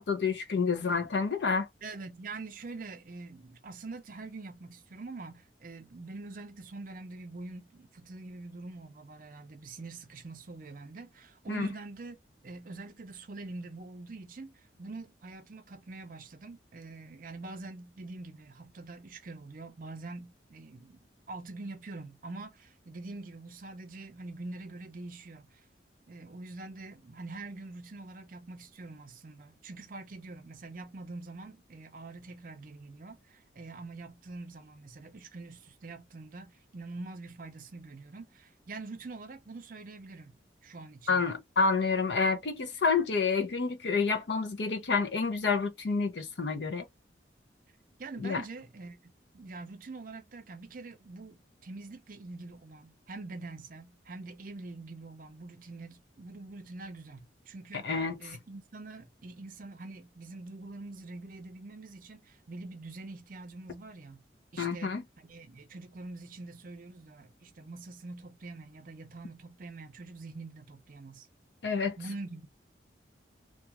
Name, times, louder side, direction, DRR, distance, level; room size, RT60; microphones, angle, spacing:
voice 1, 0.0-1.7 11.5-11.7 41.1-46.8 48.2-48.4 57.8-58.2 64.6-65.0 71.6-72.0, left 4 dB, 70° left, 0.6 m, -28 dB
voice 2, 1.8-12.2 12.4-25.6 26.1-40.3 40.6-41.2 48.0-64.2 64.5-71.3 71.7-72.5, right 3 dB, 45° right, 0.5 m, -45 dB
2.3 x 2.3 x 2.8 m
head